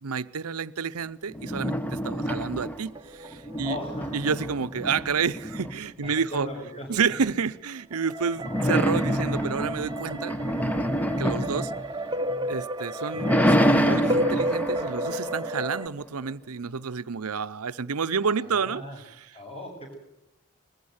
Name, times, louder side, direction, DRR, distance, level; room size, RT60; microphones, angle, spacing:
voice 1, 0.0-3.8 4.1-6.5 6.9-10.3 11.2-11.7 12.5-18.8, right 5 dB, 85° right, 13 dB, 0.7 m, -29 dB
sound 1, 1.3-3.0 3.3-6.1 8.4-12.5 12.9-16.0, equal, 5° left, 0.9 m, -27 dB
sound 2, 2.8-5.5 7.9-15.9, right 1 dB, 20° right, 0.8 m, -33 dB
voice 2, 3.6-4.3 6.0-7.1 18.4-19.0 19.3-20.0, left 1 dB, 25° left, 2 dB, 7.7 m, -38 dB
21.0 x 15.0 x 9.6 m, 0.88 s
head